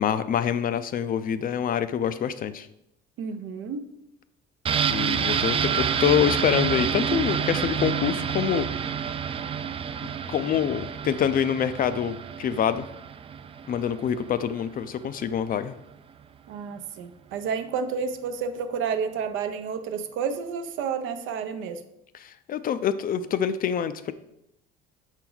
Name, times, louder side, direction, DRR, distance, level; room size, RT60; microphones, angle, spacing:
voice 1, 0.0-2.7 4.9-8.7 10.3-12.9 13.7-15.8 22.2-24.1, left 9 dB, 45° left, 13 dB, 0.4 m, -26 dB
voice 2, 3.2-3.8 16.5-21.8, right 6 dB, 70° right, 8 dB, 0.7 m, -30 dB
sound 1, 4.7-14.3 14.6-14.7, right 7 dB, 25° right, 0.3 m, -28 dB
6.0 x 4.5 x 3.9 m, 0.82 s
supercardioid pair, 95°, 21 cm